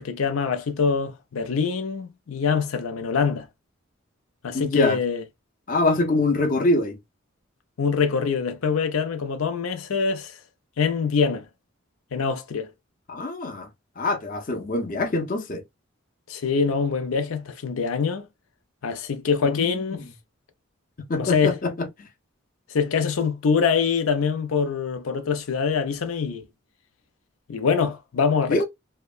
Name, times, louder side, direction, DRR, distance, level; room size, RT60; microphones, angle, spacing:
voice 1, 0.0-3.5 4.4-5.2 7.8-10.4 10.8-11.4 12.1-12.7 16.3-18.3 18.8-20.0 21.2-21.6 22.7-26.4 27.5-28.6, left 5 dB, 90° left, 0.5 m, -24 dB
voice 2, 4.5-5.0 5.7-7.0 13.1-13.7 14.0-15.6 19.4-20.1 21.1-22.1 28.5-28.6, left 2 dB, 40° left, 0.6 m, -24 dB
2.8 x 2.1 x 2.3 m
head